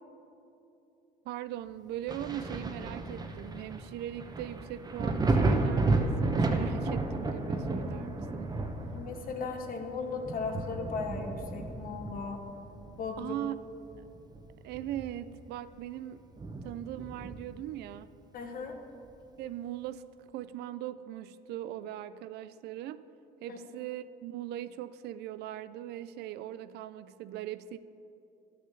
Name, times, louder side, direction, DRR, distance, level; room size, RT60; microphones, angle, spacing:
voice 1, 1.3-8.6 13.2-13.6 14.0-14.1 14.6-16.3 16.6-18.1 19.4-20.1 20.3-23.1 23.4-27.8, right 12 dB, 75° right, 14 dB, 0.4 m, -40 dB
Thunder, 2.1-13.4 13.8-15.3 15.7-15.8 16.4-17.6 19.1-19.2, right 2 dB, 25° right, 0.9 m, -32 dB
voice 2, 8.9-12.4 13.0-13.3 18.3-18.7 23.5-23.6, left 4 dB, 60° left, 4 dB, 1.3 m, -37 dB
11.5 x 6.6 x 6.8 m, 2.8 s
cardioid pair, 110°, 17 cm